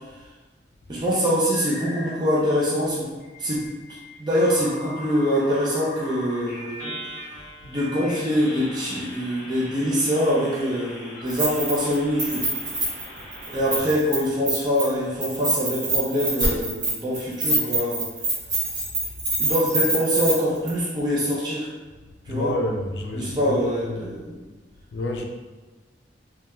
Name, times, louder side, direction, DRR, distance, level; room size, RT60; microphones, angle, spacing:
voice 1, 0.9-3.1 3.4-3.7 4.2-7.0 7.6-12.5 13.5-18.1 19.4-21.7 22.3-22.5 23.1-24.4, equal, 25° right, -6 dB, 0.4 m, -24 dB
sound 1, 1.5-2.3 3.2-13.8, equal, 10° left, 0.9 m, -40 dB
Keys jangling, 11.3-11.9 12.2-14.2 14.5-14.9 15.2-20.3 20.7-20.8, right 2 dB, 70° right, 1.0 m, -25 dB
voice 2, 22.3-24.1 24.9-25.2, left 1 dB, 75° left, 2 dB, 0.4 m, -29 dB
3.0 x 2.2 x 2.2 m, 1.3 s
head